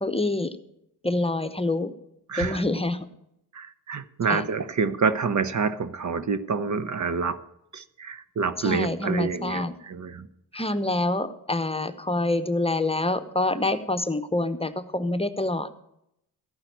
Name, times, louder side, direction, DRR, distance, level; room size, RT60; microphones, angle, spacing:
voice 1, 0.0-0.6 1.0-1.9 2.4-3.1 4.3-4.5 8.6-9.8 10.5-15.7, left 2 dB, 15° left, 11 dB, 0.9 m, -26 dB
voice 2, 2.3-2.6 3.5-7.4 7.7-10.3, right 5 dB, 50° right, 13 dB, 0.9 m, -27 dB
14.0 x 5.7 x 9.2 m, 0.80 s
cardioid pair, 65°, 38 cm